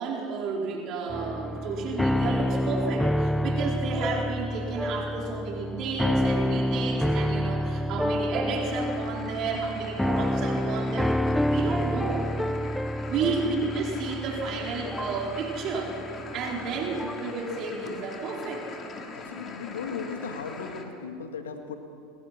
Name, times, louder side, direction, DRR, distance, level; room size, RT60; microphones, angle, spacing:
voice 1, 0.0-12.3 13.1-16.0 16.3-18.7, right 4 dB, 50° right, 0 dB, 4.3 m, -31 dB
sound 1, 1.1-17.4, left 1 dB, 5° left, 0.5 m, -28 dB
sound 2, 8.5-20.8, left 4 dB, 35° left, 3.2 m, -42 dB
voice 2, 16.6-17.0 19.1-21.8, left 5 dB, 90° left, 5 dB, 1.9 m, -37 dB
28.5 x 21.0 x 5.9 m, 2.7 s
hypercardioid pair, 90°, 0 cm